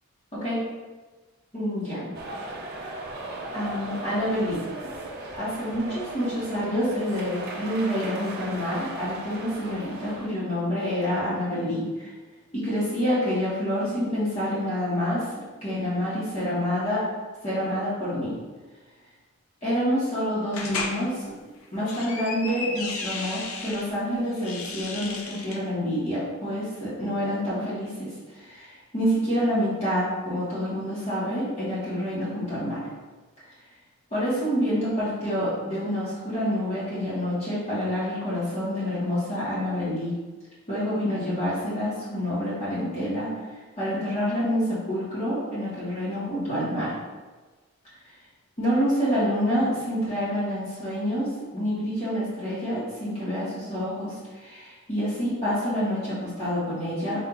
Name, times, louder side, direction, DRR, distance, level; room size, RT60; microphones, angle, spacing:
voice 1, 1.5-2.1 3.5-4.6 5.3-12.1 12.5-15.2 15.6-17.0 17.4-18.3 19.6-21.3 21.7-28.1 28.3-32.8 34.1-40.1 40.7-43.3 43.8-47.0 48.6-57.2, equal, 30° left, -11 dB, 1.4 m, -27 dB
sound 1, 2.1-10.3, right 2 dB, 45° right, 0.6 m, -37 dB
sound 2, 20.5-21.0 21.6-23.9 24.3-25.6, left 3 dB, 75° left, 0.6 m, -34 dB
4.3 x 2.7 x 3.9 m, 1.3 s
head